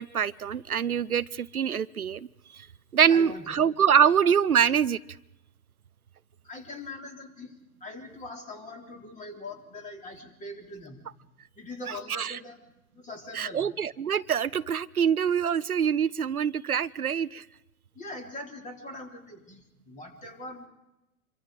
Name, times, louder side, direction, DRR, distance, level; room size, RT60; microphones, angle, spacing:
voice 1, 0.0-2.3 2.5-2.7 2.9-5.0 12.1-12.4 13.3-17.4, right 8 dB, 85° right, 17 dB, 0.7 m, -25 dB
voice 2, 3.1-3.5 6.4-11.1 11.6-12.6 12.9-13.7 17.9-20.7, left 2 dB, 15° left, 4 dB, 3.7 m, -42 dB
26.5 x 24.0 x 5.1 m, 0.94 s
figure-of-eight pair, 105°, 43 cm